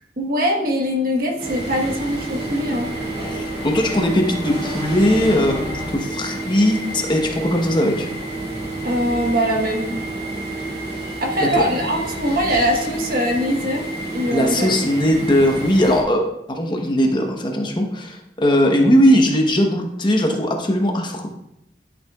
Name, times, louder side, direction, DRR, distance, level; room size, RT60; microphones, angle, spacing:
voice 1, 0.2-2.9 8.8-9.9 11.2-13.9 14.1-14.7, equal, 55° right, 2 dB, 1.3 m, -22 dB
sound 1, 0.9-5.9, left 1 dB, 15° right, 2.3 m, -35 dB
sound 2, 1.4-16.0, right 2 dB, 40° right, 2.6 m, -29 dB
voice 2, 3.2-8.1 11.4-11.6 14.3-21.3, equal, 25° left, 2 dB, 1.0 m, -19 dB
11.5 x 6.7 x 2.4 m, 0.81 s
head